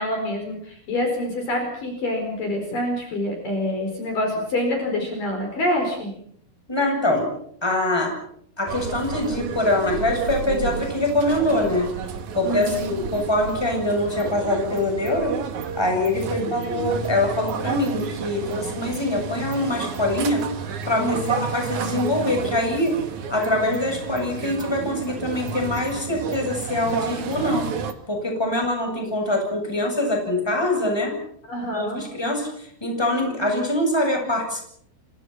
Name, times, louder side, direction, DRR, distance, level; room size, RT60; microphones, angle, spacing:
voice 1, 0.0-6.1 12.4-12.9 16.3-16.5 21.0-21.4 31.5-32.0, left 1 dB, 45° left, 3 dB, 6.1 m, -26 dB
voice 2, 6.7-7.3 7.6-8.1 8.6-11.9 12.3-15.4 15.7-20.4 20.9-22.9 23.3-27.7 28.1-31.2 31.7-34.6, left 1 dB, 5° left, 2 dB, 7.5 m, -24 dB
sound 1, 8.7-27.9, right 6 dB, 55° right, 2.5 m, -31 dB
30.0 x 25.5 x 5.9 m, 0.66 s
omnidirectional pair, 5.7 m